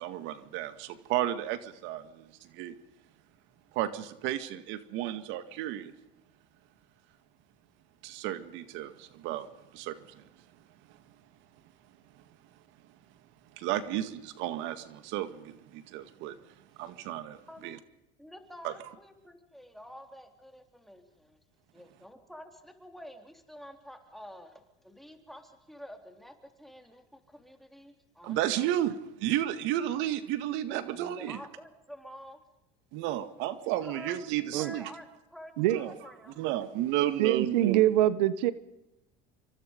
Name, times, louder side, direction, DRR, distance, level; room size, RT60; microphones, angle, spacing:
voice 1, 0.0-2.8 3.7-5.9 8.0-9.5 9.7-10.2 13.6-16.4 16.8-17.8 18.6-18.7 28.2-31.4 32.9-34.9 35.7-35.9 36.4-37.9, right 12 dB, 65° right, 11 dB, 2.0 m, -33 dB
voice 2, 18.2-21.4 21.7-28.7 30.8-32.4 33.8-34.2 34.6-36.4, equal, ahead, 5 dB, 3.5 m, -49 dB
voice 3, 37.2-38.5, right 13 dB, 90° right, 15 dB, 1.2 m, -24 dB
27.0 x 24.5 x 5.3 m, 0.88 s
supercardioid pair, 120°, 21 cm